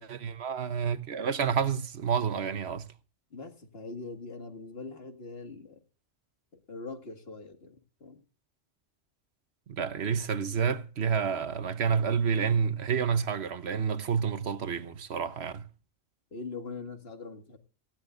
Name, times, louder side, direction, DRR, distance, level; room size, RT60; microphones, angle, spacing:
voice 1, 0.0-2.9 9.7-15.6, right 6 dB, 70° right, 1.3 m, -29 dB
voice 2, 3.3-5.8 6.5-8.2 16.3-17.6, left 3 dB, 60° left, 2.2 m, -42 dB
19.0 x 15.5 x 2.6 m
omnidirectional pair, 1.2 m